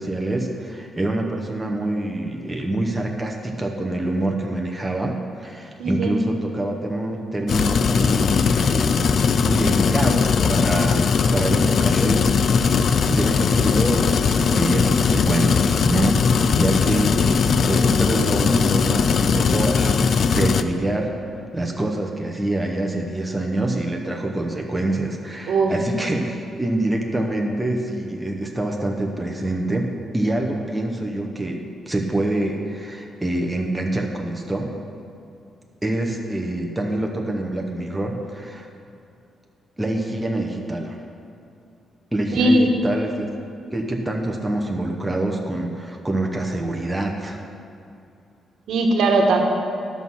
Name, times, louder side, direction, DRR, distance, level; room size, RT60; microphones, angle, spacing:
voice 1, 0.0-12.2 12.6-21.1 21.5-34.7 35.8-38.7 39.8-41.1 42.1-43.3 43.7-47.4, right 1 dB, 10° right, 1 dB, 0.7 m, -26 dB
voice 2, 5.8-6.2 25.5-25.7 42.4-42.7 48.7-49.4, right 2 dB, 70° right, 2 dB, 1.2 m, -18 dB
sound 1, 7.5-20.6, left 5 dB, 45° left, 0.3 m, -19 dB
11.5 x 6.1 x 5.5 m, 2.6 s
cardioid pair, 165°, 0 cm